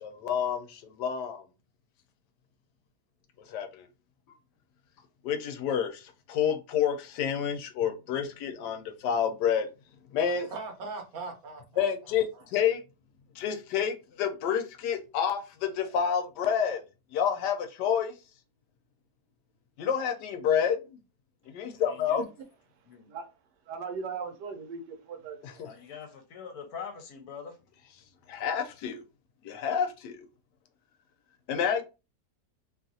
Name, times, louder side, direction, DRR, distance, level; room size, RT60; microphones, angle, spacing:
voice 1, 0.0-1.4 3.5-3.9 5.2-9.7 10.1-10.5 11.8-12.8 13.4-16.8 17.1-18.1 19.8-21.0 21.5-22.2 25.4-25.7 28.3-29.0 29.4-30.2 31.5-31.8, left 8 dB, 85° left, 1.2 m, -29 dB
voice 2, 10.2-12.4, right 3 dB, 65° right, 1.1 m, -41 dB
voice 3, 21.7-22.2 22.9-23.1 25.6-27.6, left 6 dB, 70° left, 1.2 m, -43 dB
voice 4, 23.7-25.7, right 5 dB, 85° right, 1.3 m, -38 dB
3.0 x 2.4 x 2.6 m
omnidirectional pair, 1.8 m